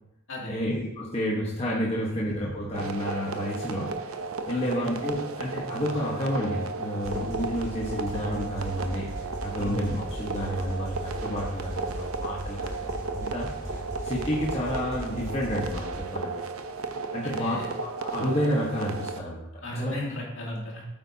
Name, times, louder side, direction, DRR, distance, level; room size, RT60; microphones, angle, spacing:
voice 1, 0.5-4.0 4.5-9.1 9.4-11.0 11.2-13.7 14.0-16.3 17.1-19.9, equal, 30° left, -4 dB, 1.3 m, -30 dB
sound 1, 2.7-19.2, right 4 dB, 85° right, 0.7 m, -35 dB
voice 2, 4.5-4.9 9.6-9.8 17.2-17.7 19.6-20.8, left 1 dB, 65° left, -3 dB, 2.7 m, -36 dB
sound 2, 7.0-16.0, equal, 15° right, 2.6 m, -38 dB
8.7 x 8.5 x 2.8 m, 0.85 s
head